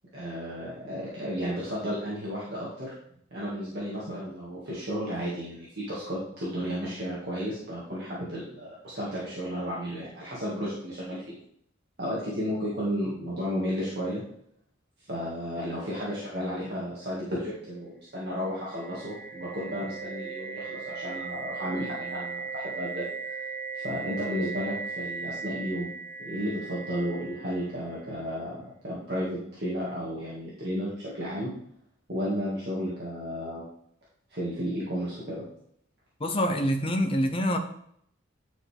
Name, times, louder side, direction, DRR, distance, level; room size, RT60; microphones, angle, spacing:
voice 1, 0.1-2.9 3.3-11.3 12.0-14.2 15.0-23.5 23.7-25.9 26.2-31.5 32.1-33.6 34.3-35.4, equal, 55° right, -8 dB, 2.1 m, -33 dB
sound 1, 18.3-28.2, right 5 dB, 5° right, 1.7 m, -38 dB
voice 2, 36.2-37.6, equal, 25° left, 5 dB, 0.8 m, -25 dB
10.5 x 4.8 x 3.5 m, 0.69 s
head